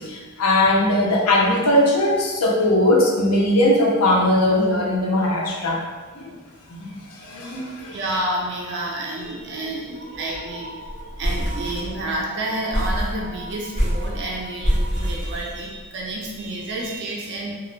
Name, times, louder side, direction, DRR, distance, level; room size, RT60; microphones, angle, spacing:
voice 1, 0.1-5.8 6.1-6.3 6.8-6.9 7.2-8.0, left 1 dB, 85° left, -2 dB, 0.6 m, -19 dB
voice 2, 7.9-17.5, right 1 dB, 50° right, -2 dB, 0.4 m, -29 dB
sound 1, 9.4-9.5 9.7-9.8 10.1-10.5 10.9-12.3 12.7-16.0, equal, 20° left, 0.9 m, -26 dB
2.3 x 2.0 x 3.1 m, 1.4 s
head